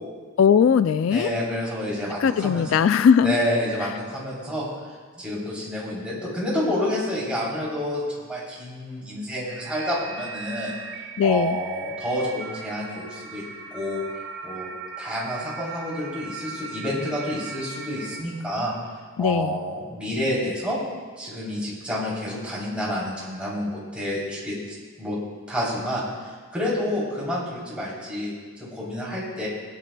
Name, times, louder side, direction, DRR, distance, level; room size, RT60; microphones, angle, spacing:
voice 1, 0.4-1.3 2.2-3.3 11.2-11.6 19.2-19.6, left 7 dB, 75° left, 12 dB, 0.3 m, -19 dB
voice 2, 1.1-2.8 3.2-4.7 5.2-10.7 11.2-13.4 13.7-14.0 14.4-14.7 15.0-18.7 19.2-20.8 21.2-25.2 25.5-29.5, equal, 5° right, -8 dB, 3.4 m, -29 dB
sound 1, 9.5-18.2, right 4 dB, 80° right, 2.0 m, -38 dB
20.0 x 10.0 x 2.3 m, 1.5 s
head